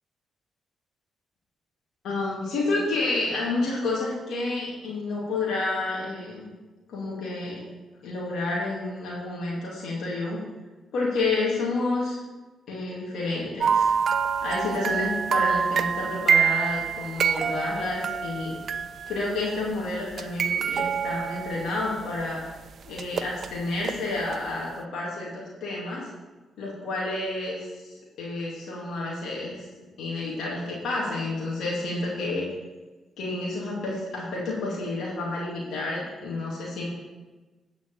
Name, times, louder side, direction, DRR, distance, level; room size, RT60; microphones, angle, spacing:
voice 1, 2.0-6.4 6.9-7.6 8.0-10.4 10.9-12.2 12.7-13.9 14.4-18.6 19.1-22.4 22.8-26.1 26.6-29.6 30.0-32.4 33.2-36.9, left 2 dB, 75° left, -5 dB, 2.5 m, -30 dB
sound 1, 13.6-19.5 20.1-22.2 23.0-24.0 24.3-24.4, right 7 dB, 60° right, 0.4 m, -26 dB
9.8 x 5.0 x 7.3 m, 1.2 s
supercardioid pair, 60°, 0 cm